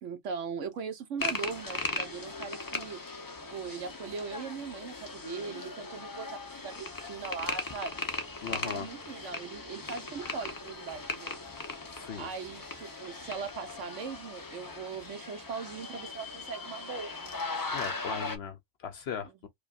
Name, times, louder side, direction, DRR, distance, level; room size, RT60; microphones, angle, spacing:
voice 1, 0.0-3.0 3.5-8.0 8.4-11.4 12.2-17.3 19.2-19.5, right 5 dB, 65° right, 1.1 m, -40 dB
sound 1, 1.2-18.4, left 3 dB, 35° left, 0.3 m, -38 dB
voice 2, 8.4-8.9 11.9-12.3 17.7-19.5, left 7 dB, 65° left, 0.7 m, -38 dB
4.8 x 2.3 x 2.4 m
omnidirectional pair, 1.4 m